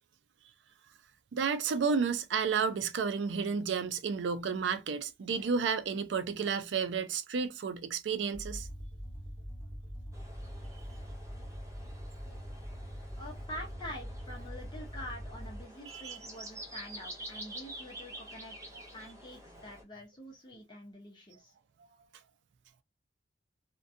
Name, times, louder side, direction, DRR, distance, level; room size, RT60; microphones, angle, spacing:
voice 1, 1.3-8.7 15.9-16.2, right 5 dB, 80° right, 0.4 m, -31 dB
sound 1, 8.3-15.6, equal, ahead, 1.0 m, -43 dB
sound 2, 10.1-19.8, right 1 dB, 15° right, 0.6 m, -48 dB
voice 2, 13.2-18.6 18.9-21.5, left 1 dB, 25° left, 0.7 m, -46 dB
2.6 x 2.2 x 2.5 m
head